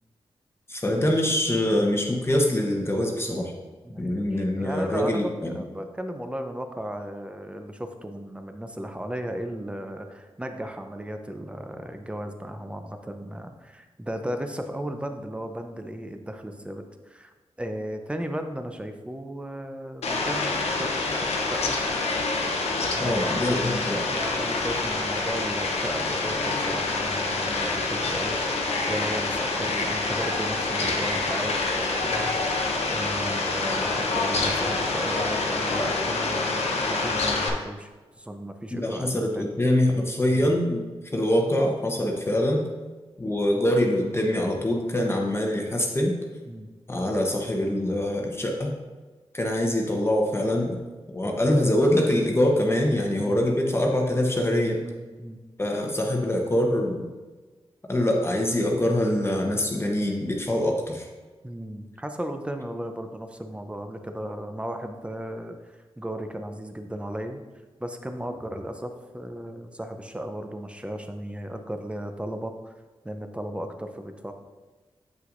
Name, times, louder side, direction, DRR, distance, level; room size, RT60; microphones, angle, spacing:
voice 1, 0.7-3.5 4.0-5.5 23.0-24.0 38.7-40.8 41.1-42.6 43.2-46.2 46.9-48.7 49.3-50.8 51.1-54.8 55.6-57.1 57.9-61.1, left 1 dB, 25° left, 0 dB, 1.0 m, -24 dB
voice 2, 3.8-21.0 21.4-21.8 22.9-23.8 24.1-39.5 46.5-46.7 53.2-53.5 54.8-55.4 61.4-67.4 67.8-72.7 73.0-74.3, equal, 10° right, 6 dB, 0.6 m, -35 dB
Fowl, 20.0-37.5, left 3 dB, 90° left, 0.8 m, -27 dB
sound 1, 28.0-34.1, equal, 70° right, 1.9 m, -42 dB
7.7 x 5.8 x 2.6 m, 1.3 s
cardioid pair, 70°, 11 cm